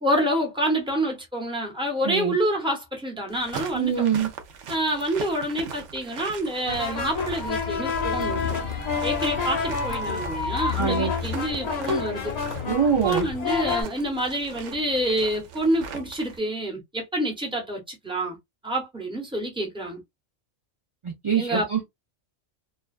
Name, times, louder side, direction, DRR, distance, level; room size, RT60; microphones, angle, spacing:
voice 1, 0.0-3.9 4.7-8.6 9.0-12.3 13.0-18.4 18.6-20.0 21.3-21.8, right 1 dB, 5° right, 0.7 m, -27 dB
voice 2, 2.0-2.4 3.7-4.3 10.7-11.1 12.7-13.3 21.0-21.8, right 7 dB, 50° right, 0.3 m, -24 dB
sound 1, 3.3-16.4, right 6 dB, 75° right, 0.9 m, -40 dB
sound 2, 6.7-13.8, left 5 dB, 40° left, 0.6 m, -28 dB
2.4 x 2.2 x 2.3 m
omnidirectional pair, 1.3 m